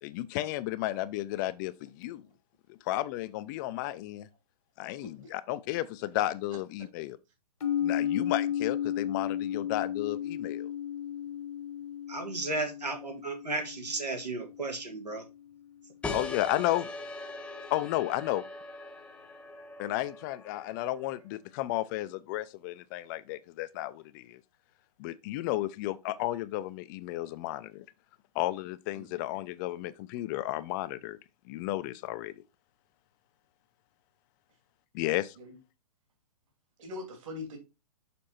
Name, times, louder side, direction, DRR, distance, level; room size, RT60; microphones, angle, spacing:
voice 1, 0.0-2.2 2.7-4.3 4.8-7.2 7.8-10.7 16.1-16.9 17.7-18.4 19.8-24.4 25.0-27.8 28.3-31.2 31.5-32.3 34.9-35.3, left 15 dB, 30° left, 0.5 m, -33 dB
voice 2, 5.0-5.3 28.9-29.3 35.4-35.5 36.8-37.6, left 2 dB, 50° right, 3.0 m, -42 dB
sound 1, 7.6-15.4, left 10 dB, 60° left, 1.2 m, -34 dB
voice 3, 12.1-15.2, right 3 dB, 85° right, 2.2 m, -34 dB
sound 2, 16.0-21.2, left 3 dB, 5° left, 0.8 m, -41 dB
6.8 x 5.1 x 4.3 m
figure-of-eight pair, 120°, 20 cm